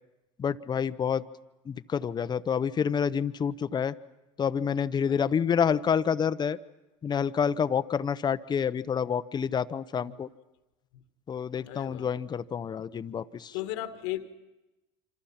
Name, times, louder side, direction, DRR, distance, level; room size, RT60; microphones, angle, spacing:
voice 1, 0.4-1.2 1.7-3.9 4.4-6.6 7.0-10.3 11.3-13.5, left 7 dB, 30° left, 0.9 m, -28 dB
voice 2, 11.6-12.1 13.5-14.2, left 15 dB, 75° left, 1.8 m, -36 dB
27.0 x 26.0 x 5.9 m
hypercardioid pair, 85°, 15 cm